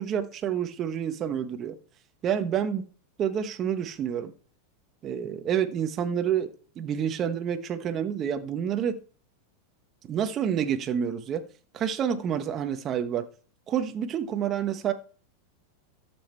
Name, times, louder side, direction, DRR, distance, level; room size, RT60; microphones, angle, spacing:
voice 1, 0.0-1.7 2.2-2.8 3.2-4.3 5.0-6.5 6.8-9.0 10.0-11.4 11.7-13.3 13.7-14.9, right 8 dB, 30° right, 1.1 m, -28 dB
13.0 x 7.2 x 4.4 m
supercardioid pair, 135°, 0 cm